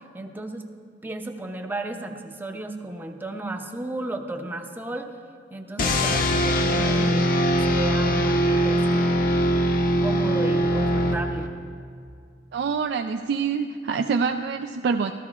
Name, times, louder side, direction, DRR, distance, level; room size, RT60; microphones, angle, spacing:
voice 1, 0.1-0.7 1.0-5.1 5.5-9.1 10.0-11.5, right 1 dB, 10° right, 5 dB, 0.6 m, -34 dB
sound 1, 5.8-11.7, equal, 50° left, 0.6 m, -22 dB
voice 2, 12.5-15.1, right 5 dB, 65° right, 5 dB, 0.3 m, -26 dB
13.5 x 13.5 x 2.4 m, 2.3 s
head